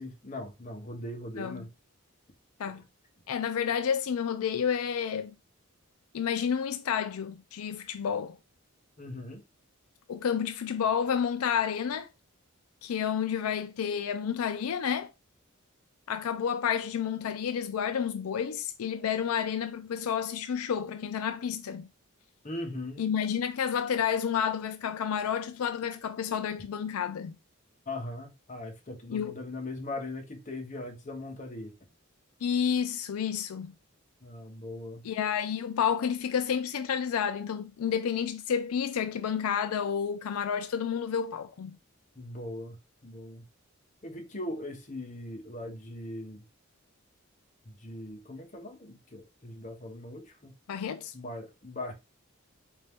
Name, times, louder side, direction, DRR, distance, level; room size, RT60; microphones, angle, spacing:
voice 1, 0.0-1.7 2.6-2.8 9.0-9.4 22.4-23.0 27.9-31.7 34.2-35.0 42.2-42.8 43.0-43.4 44.0-46.4 47.7-50.5 51.1-51.9, left 1 dB, 35° left, 0.9 m, -40 dB
voice 2, 3.3-5.3 6.1-8.4 10.1-12.1 12.8-15.1 16.1-21.9 23.0-27.4 29.1-29.3 32.4-33.7 35.0-41.8 50.7-51.1, left 7 dB, 85° left, 0.4 m, -30 dB
4.2 x 2.6 x 3.4 m
head